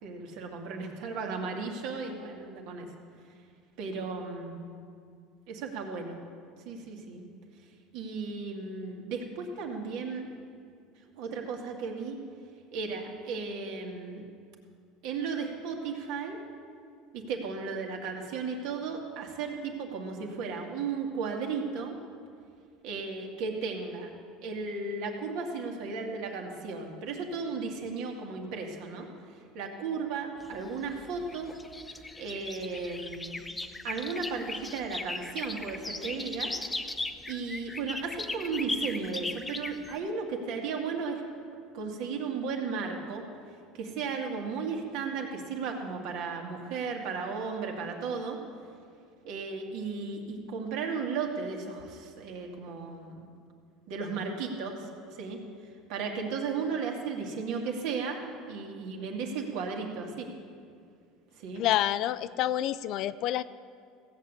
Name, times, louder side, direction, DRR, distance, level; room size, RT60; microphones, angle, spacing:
voice 1, 0.0-2.9 3.8-4.8 5.5-6.2 6.7-7.3 7.9-10.3 11.2-12.2 12.7-14.2 15.0-16.4 17.1-22.0 22.8-24.1 24.4-29.1 29.5-31.5 32.2-33.4 33.8-36.5 37.3-41.2 41.7-43.3 43.7-48.4 49.2-53.3 53.9-55.4 55.9-58.2 58.5-60.3 61.4-61.6, right 5 dB, 65° right, 2 dB, 2.1 m, -35 dB
sound 1, 30.4-40.0, left 2 dB, 10° left, 0.6 m, -38 dB
voice 2, 61.6-63.4, left 13 dB, 55° left, 16 dB, 0.4 m, -28 dB
16.0 x 7.4 x 8.2 m, 2.3 s
supercardioid pair, 135°, 0 cm